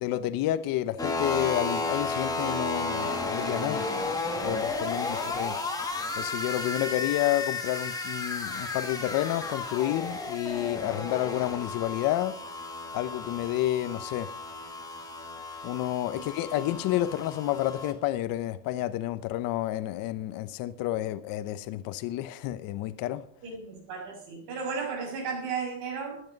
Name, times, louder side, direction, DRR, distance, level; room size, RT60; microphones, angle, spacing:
voice 1, 0.0-3.9 4.4-5.6 6.1-12.3 12.9-14.3 15.6-23.2, left 14 dB, 55° left, 0.9 m, -30 dB
sound 1, 1.0-17.9, left 3 dB, 10° left, 1.9 m, -33 dB
voice 2, 5.1-5.6 16.1-16.2 23.4-26.2, right 5 dB, 75° right, 6.5 m, -35 dB
15.0 x 10.5 x 5.3 m
cardioid pair, 155°, 40 cm